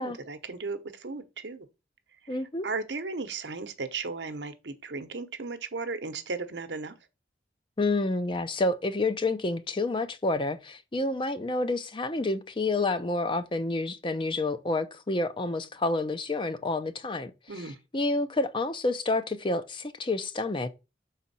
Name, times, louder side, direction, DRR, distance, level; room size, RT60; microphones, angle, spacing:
voice 1, 0.0-1.7 2.6-7.0 17.5-17.8, right 4 dB, 85° right, 0.8 m, -35 dB
voice 2, 2.3-2.6 7.8-17.3 17.9-20.7, left 2 dB, 30° left, 0.5 m, -29 dB
6.2 x 4.1 x 4.1 m
head